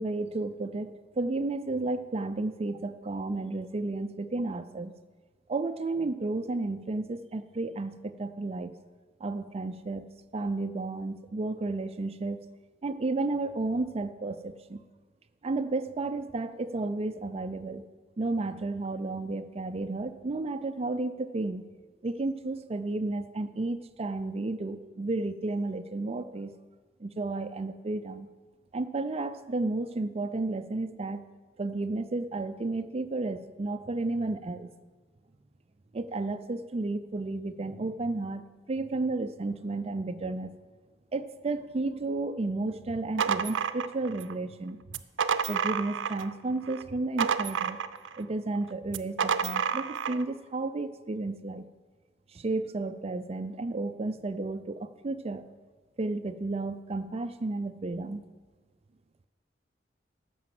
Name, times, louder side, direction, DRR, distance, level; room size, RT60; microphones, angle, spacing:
voice 1, 0.0-4.9 5.5-8.7 9.2-10.1 10.3-12.4 12.8-14.8 15.4-17.8 18.2-21.6 22.0-26.5 27.0-28.3 28.7-31.2 31.6-34.7 35.9-40.5 41.1-44.8 45.5-47.8 48.2-51.6 52.3-55.4 56.0-58.2, right 2 dB, 35° right, 11 dB, 0.4 m, -32 dB
sound 1, 42.9-44.3 44.9-46.3 46.7-48.2 48.9-50.2, right 6 dB, 90° right, 0.5 m, -30 dB
13.5 x 6.0 x 7.4 m, 1.4 s
head